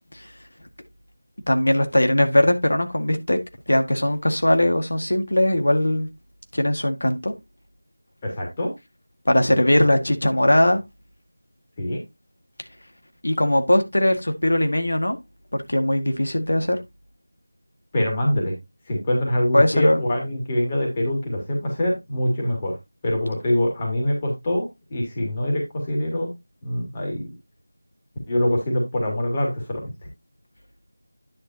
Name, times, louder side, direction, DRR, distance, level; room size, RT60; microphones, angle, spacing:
voice 1, 1.5-3.4 3.7-6.1 6.5-7.3 9.3-10.8 13.2-15.2 15.5-16.8 19.5-20.0, left 1 dB, 75° left, 1.9 m, -20 dB
voice 2, 8.2-8.7 11.8-12.0 17.9-18.6 18.9-22.8 23.0-26.3 26.6-27.3 28.3-29.9, left 1 dB, 20° left, 2.6 m, -24 dB
10.0 x 6.5 x 2.9 m
figure-of-eight pair, 170°, 0 cm